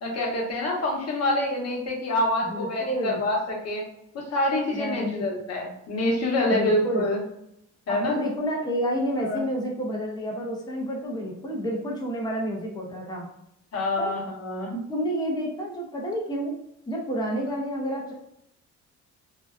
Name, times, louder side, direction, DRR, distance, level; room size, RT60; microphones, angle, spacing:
voice 1, 0.0-3.8 4.1-7.2 7.9-8.3 9.2-9.4 13.7-14.7, left 1 dB, 55° left, -1 dB, 0.9 m, -26 dB
voice 2, 2.4-3.2 4.7-5.2 6.5-7.1 7.9-13.3 14.0-14.2 14.7-16.5 16.9-18.1, equal, 15° left, -1 dB, 0.6 m, -29 dB
2.6 x 2.2 x 2.3 m, 0.79 s
cardioid pair, 90°, 30 cm